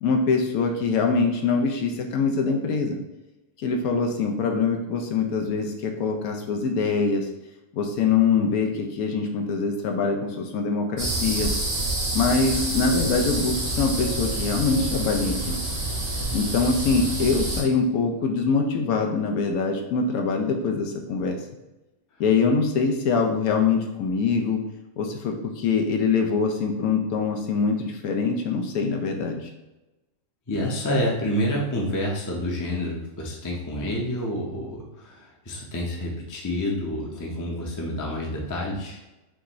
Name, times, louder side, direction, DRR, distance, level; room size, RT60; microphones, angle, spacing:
voice 1, 0.0-3.0 3.6-7.3 7.7-11.5 12.1-15.6 16.3-21.4 22.2-24.6 25.0-29.4, left 4 dB, 75° left, 3 dB, 1.1 m, -24 dB
sound 1, 11.0-17.6, right 2 dB, 75° right, 1.7 m, -27 dB
voice 2, 30.5-39.0, equal, 20° left, -2 dB, 0.5 m, -28 dB
5.7 x 2.6 x 3.0 m, 1.0 s
omnidirectional pair, 1.6 m